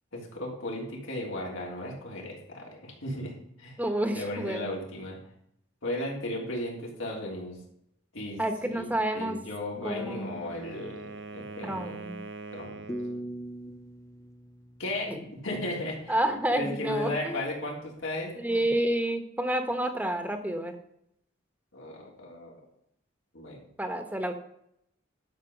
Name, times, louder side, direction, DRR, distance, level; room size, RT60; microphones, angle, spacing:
voice 1, 0.1-3.3 3.6-3.8 4.1-5.2 5.8-7.6 8.1-12.1 12.5-12.9 14.8-16.2 16.5-18.7 21.7-22.6 23.3-23.7, left 1 dB, 85° left, -2 dB, 3.4 m, -36 dB
voice 2, 3.8-4.7 8.4-9.4 9.8-10.4 11.6-12.3 15.1-15.2 16.1-17.4 18.4-20.8 23.8-24.3, right 1 dB, 10° right, 7 dB, 1.1 m, -29 dB
Wind instrument woodwind instrument, 9.7-13.3, right 3 dB, 60° right, 0.8 m, -43 dB
sound 1, 12.9-15.8, right 1 dB, 15° left, 0.5 m, -40 dB
12.0 x 5.6 x 6.4 m, 0.74 s
head